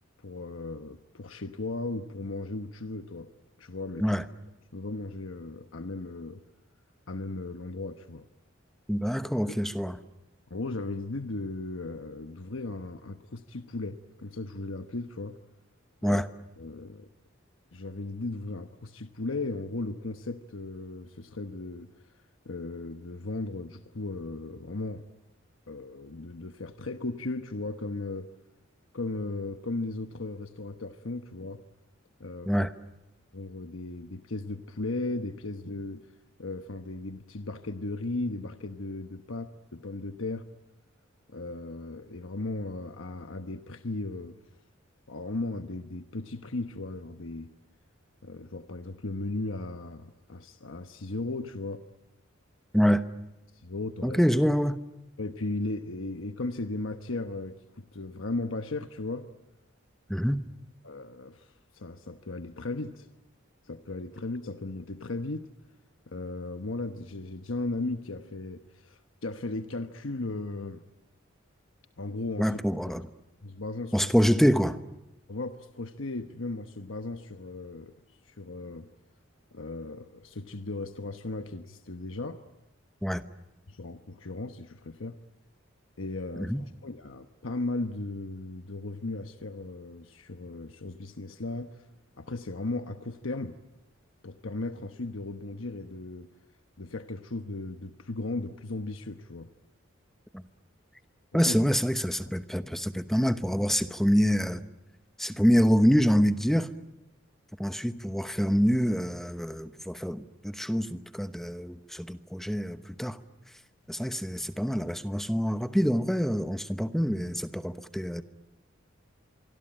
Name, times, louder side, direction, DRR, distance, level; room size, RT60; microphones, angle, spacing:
voice 1, 0.2-3.3 3.6-4.0 4.7-6.4 7.1-8.3 9.5-9.6 10.5-15.4 16.0-16.2 16.6-17.1 17.7-21.9 22.4-25.0 25.7-28.3 28.9-31.6 32.2-32.7 33.3-36.1 36.4-40.5 41.3-44.4 45.1-47.5 48.2-51.8 53.6-54.2 55.2-59.3 60.8-63.1 63.6-65.5 66.1-70.8 72.0-72.6 73.4-74.1 75.3-77.9 78.3-78.9 79.5-82.4 83.7-85.2 86.0-91.9 92.2-93.6 94.2-96.3 96.8-99.5 101.3-101.6, left 2 dB, 75° left, 1.1 m, -36 dB
voice 2, 8.9-10.0 16.0-16.3 32.5-32.7 52.7-53.0 54.0-54.8 60.1-60.5 72.4-73.1 73.9-74.8 83.0-83.2 86.3-86.6 100.3-100.4 101.3-104.6 105.2-106.7 107.6-113.2 113.9-118.2, equal, ahead, 1.0 m, -26 dB
25.5 x 24.0 x 8.9 m
head